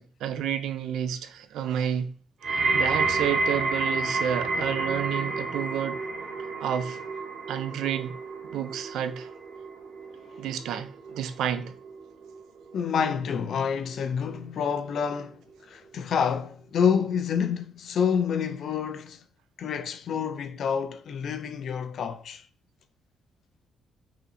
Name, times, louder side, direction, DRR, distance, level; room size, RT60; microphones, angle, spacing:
voice 1, 0.0-2.1 2.7-6.0 6.6-7.0 7.5-8.1 8.5-9.3 10.4-11.8, right 9 dB, 85° right, 0.4 m, -30 dB
sound 1, 2.4-13.6 13.9-14.4 15.1-15.2, right 3 dB, 60° right, 1.0 m, -30 dB
voice 2, 12.7-19.2 19.6-22.4, left 7 dB, 65° left, 0.4 m, -28 dB
5.5 x 2.5 x 2.6 m
cardioid pair, 90°, 0 cm